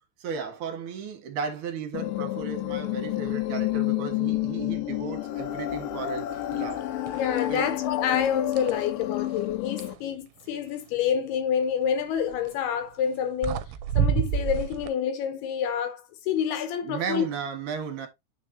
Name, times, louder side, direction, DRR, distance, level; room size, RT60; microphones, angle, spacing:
voice 1, 0.2-6.8 7.5-7.7 16.8-18.1, right 6 dB, 60° right, 2.5 m, -34 dB
sound 1, 1.9-9.9, left 15 dB, 90° left, 3.4 m, -30 dB
sound 2, 6.5-6.7 7.1-7.7 8.1-10.0 12.2-12.5 13.1-13.2 13.4-14.9, right 8 dB, 85° right, 2.8 m, -29 dB
voice 2, 7.2-13.7 14.0-17.2, left 8 dB, 75° left, 2.8 m, -28 dB
9.3 x 4.8 x 2.7 m
omnidirectional pair, 5.2 m